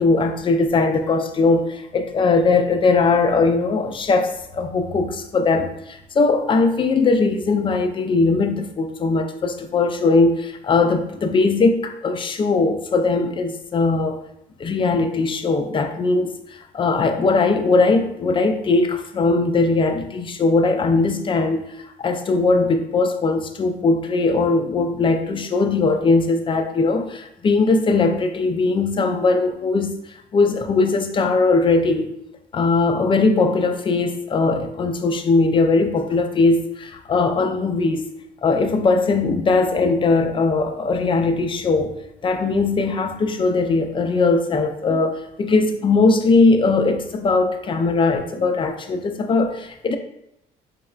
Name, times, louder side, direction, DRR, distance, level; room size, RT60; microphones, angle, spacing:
voice 1, 0.0-14.2 14.6-21.6 22.0-30.0 30.3-32.1 32.5-38.0 38.4-50.0, left 3 dB, 30° left, 6 dB, 0.4 m, -20 dB
4.0 x 3.1 x 2.3 m, 0.80 s
cardioid pair, 110°, 17 cm